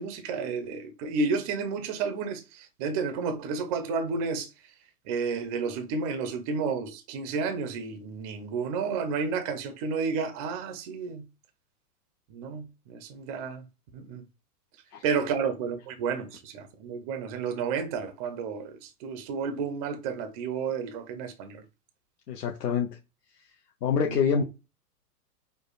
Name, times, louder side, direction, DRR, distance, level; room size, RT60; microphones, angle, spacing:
voice 1, 0.0-4.5 5.1-11.2 12.3-13.7 13.9-14.2 15.0-21.6 24.1-24.4, right 5 dB, 25° right, 0.4 m, -31 dB
voice 2, 22.3-22.9 23.8-24.4, left 6 dB, 75° left, 0.8 m, -25 dB
4.9 x 2.2 x 2.3 m
hypercardioid pair, 125°, 48 cm